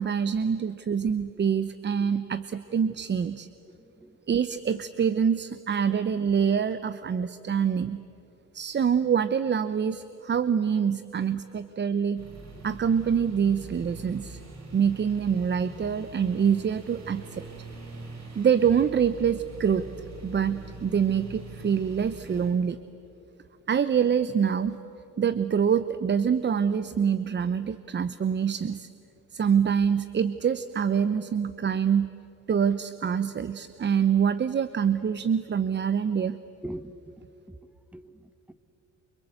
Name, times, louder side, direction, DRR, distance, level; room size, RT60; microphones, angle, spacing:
voice 1, 0.0-3.5 4.3-8.0 8.5-12.2 12.6-14.4 14.7-17.5 18.4-19.9 20.2-22.8 23.7-24.8 25.2-28.9 29.3-32.1 32.5-36.4, right 7 dB, 35° right, 0.8 m, -25 dB
sound 1, 12.2-22.5, right 2 dB, 60° right, 5.7 m, -43 dB
voice 2, 36.6-38.2, right 1 dB, 5° right, 1.0 m, -42 dB
29.5 x 24.0 x 8.0 m
cardioid pair, 90°, 30 cm